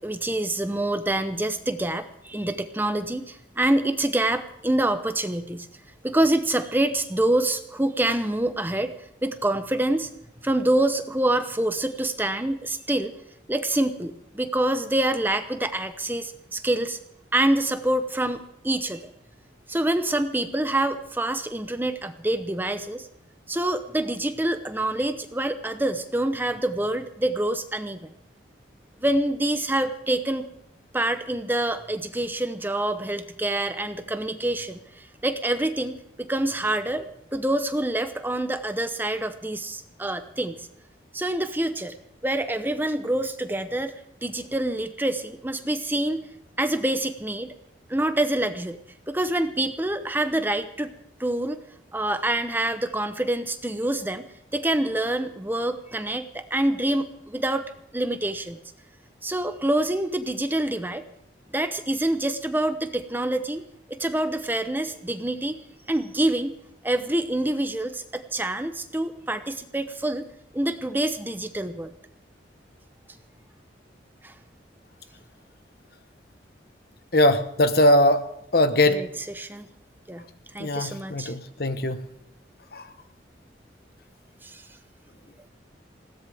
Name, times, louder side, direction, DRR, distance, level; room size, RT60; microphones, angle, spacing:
voice 1, 0.0-5.7 6.0-8.9 9.2-10.1 10.4-13.1 13.5-17.0 17.3-19.1 19.7-23.1 23.5-28.1 29.0-30.5 30.9-37.1 37.3-40.7 41.1-42.0 42.2-43.9 44.2-46.3 46.6-47.6 47.9-48.8 49.1-50.9 51.2-51.6 51.9-54.3 54.5-57.7 57.9-58.6 59.2-61.1 61.5-66.5 66.8-70.2 70.5-71.9 74.2-74.3 78.9-79.7 80.1-80.2 80.5-81.3 84.4-84.6, right 1 dB, 10° right, 9 dB, 0.8 m, -26 dB
voice 2, 77.1-78.3 78.5-79.0 80.6-82.0 82.7-82.8, left 1 dB, 55° left, 10 dB, 1.2 m, -20 dB
20.5 x 17.0 x 3.5 m, 0.79 s
head